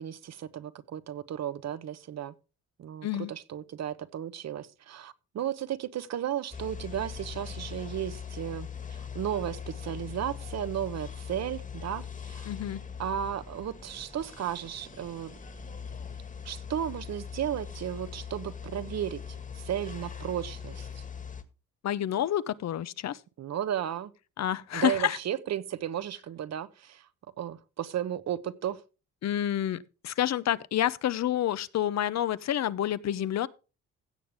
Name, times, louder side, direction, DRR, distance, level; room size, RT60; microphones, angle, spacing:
voice 1, 0.0-2.3 2.8-12.5 13.0-15.3 16.4-19.2 19.6-21.0 23.4-24.1 24.7-27.1 27.4-28.8, right 10 dB, 60° right, 1.0 m, -34 dB
sound 1, 6.5-21.4, left 7 dB, 25° left, 1.7 m, -41 dB
voice 2, 12.4-12.8 21.8-23.2 24.4-25.2 29.2-33.5, left 11 dB, 60° left, 0.8 m, -29 dB
16.0 x 7.2 x 3.5 m
cardioid pair, 90°, 30 cm